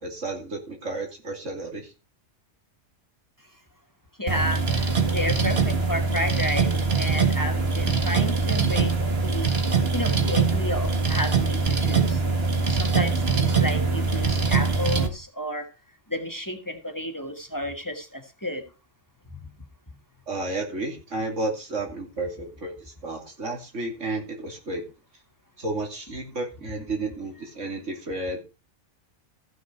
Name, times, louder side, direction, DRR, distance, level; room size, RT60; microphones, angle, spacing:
voice 1, 0.0-1.9 20.3-24.8 25.6-28.4, right 2 dB, 85° right, 2 dB, 3.2 m, -32 dB
voice 2, 4.2-9.5 9.9-12.2 12.7-15.7 16.1-18.6 19.3-19.5, left 1 dB, 15° left, 6 dB, 1.6 m, -31 dB
sound 1, 4.3-15.1, right 4 dB, 55° right, 1.9 m, -23 dB
14.5 x 6.4 x 4.5 m, 0.30 s
omnidirectional pair, 1.2 m